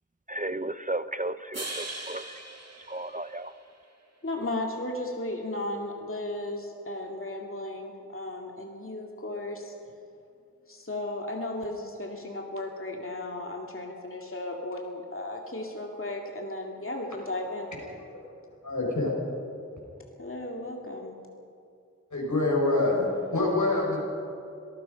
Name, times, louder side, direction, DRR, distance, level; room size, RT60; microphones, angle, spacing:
voice 1, 0.3-2.2 2.9-3.5, right 2 dB, 25° right, 13 dB, 0.6 m, -33 dB
sound 1, 1.5-3.9, right 2 dB, 55° right, 2.5 m, -40 dB
voice 2, 4.2-9.7 10.7-17.7 20.2-21.2, left 1 dB, 45° left, 1 dB, 2.3 m, -35 dB
voice 3, 18.6-19.1 22.1-24.0, left 2 dB, 80° left, -2 dB, 5.9 m, -25 dB
26.0 x 18.5 x 5.3 m, 2.6 s
wide cardioid pair, 50°, 30 cm